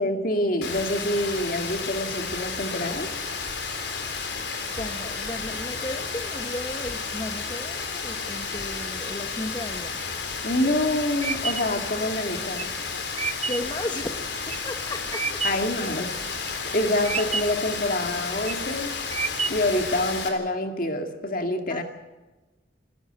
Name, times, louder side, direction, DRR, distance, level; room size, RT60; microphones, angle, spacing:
voice 1, 0.0-3.1 10.4-12.7 15.4-16.1 16.6-19.0 19.5-21.8, left 1 dB, 50° left, 5 dB, 2.2 m, -26 dB
Rain, 0.6-20.3, left 5 dB, 70° left, 3.7 m, -32 dB
voice 2, 4.8-10.0 13.5-15.4 21.7-21.8, left 1 dB, 25° left, 5 dB, 1.1 m, -35 dB
sound 1, 10.3-15.8 16.2-16.8 17.0-17.7 18.2-18.7 19.1-19.8, right 5 dB, 35° right, 0.6 m, -31 dB
28.5 x 12.5 x 8.1 m, 1.2 s
head